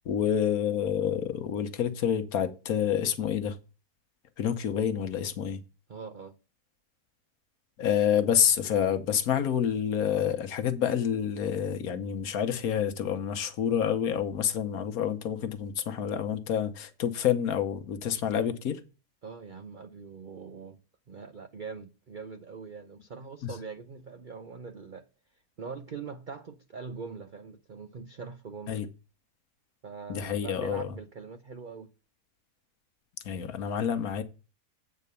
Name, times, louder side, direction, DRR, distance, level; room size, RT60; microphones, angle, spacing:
voice 1, 0.0-3.6 4.4-5.6 7.8-18.8 23.4-23.5 28.7-28.9 30.1-30.9 33.2-34.2, left 9 dB, 65° left, 1.3 m, -28 dB
voice 2, 5.9-6.3 19.2-20.8 21.1-25.0 25.6-28.8 29.8-31.9, right 5 dB, 65° right, 0.5 m, -42 dB
8.4 x 4.4 x 6.8 m
omnidirectional pair, 1.7 m